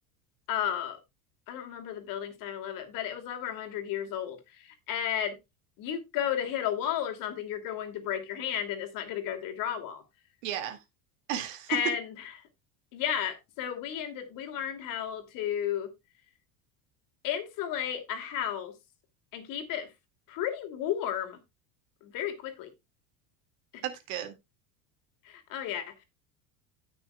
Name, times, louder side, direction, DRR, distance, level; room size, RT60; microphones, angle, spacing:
voice 1, 0.5-1.0 1.5-5.4 5.8-10.0 11.7-12.1 12.9-15.9 17.2-18.7 19.3-19.9 20.3-21.4 22.0-22.7 23.7-23.8 25.2-26.0, left 9 dB, 55° left, 2.7 m, -33 dB
voice 2, 10.4-10.8 11.3-11.8 23.8-24.4, right 10 dB, 80° right, 2.2 m, -34 dB
16.5 x 6.3 x 2.3 m
supercardioid pair, 110°, 39 cm